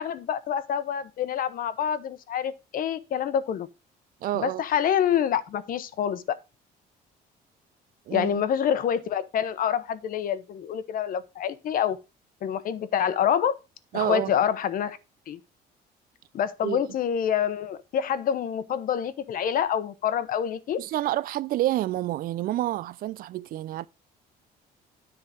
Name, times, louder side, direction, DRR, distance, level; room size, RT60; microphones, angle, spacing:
voice 1, 0.0-3.7 4.3-6.4 8.1-12.0 12.4-13.6 13.9-15.0 15.3-15.4 16.3-20.8, left 9 dB, 55° left, 0.9 m, -27 dB
voice 2, 4.2-4.6 8.1-8.4 13.9-14.3 16.6-16.8 20.8-23.9, right 14 dB, 60° right, 0.4 m, -28 dB
10.0 x 3.8 x 6.3 m
cardioid pair, 110°, 17 cm